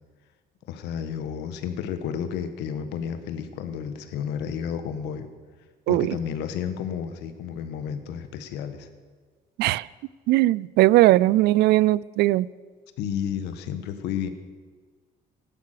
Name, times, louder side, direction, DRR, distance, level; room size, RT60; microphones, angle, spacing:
voice 1, 0.7-5.3 5.9-8.9 13.0-14.3, left 8 dB, 85° left, 1.4 m, -31 dB
voice 2, 5.9-6.2 9.6-9.9 10.3-12.5, right 16 dB, 80° right, 0.4 m, -19 dB
14.5 x 11.5 x 6.6 m
cardioid pair, 110°, 17 cm